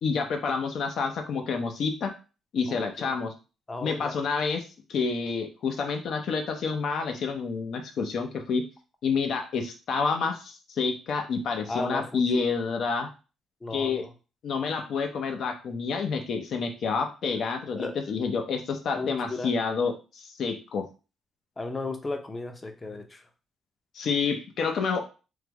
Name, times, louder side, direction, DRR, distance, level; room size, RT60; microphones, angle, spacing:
voice 1, 0.0-2.1 2.5-3.3 3.8-4.6 4.9-8.6 9.0-13.1 13.7-14.1 14.4-20.8 23.9-25.0, left 5 dB, 65° left, 5 dB, 0.6 m, -28 dB
voice 2, 2.7-3.2 3.7-4.1 11.7-12.4 13.6-14.1 17.2-17.4 17.8-17.9 19.0-19.5 21.6-23.2, left 3 dB, 25° left, 6 dB, 0.6 m, -35 dB
3.2 x 2.0 x 3.3 m, 0.33 s
cardioid pair, 90°, 0 cm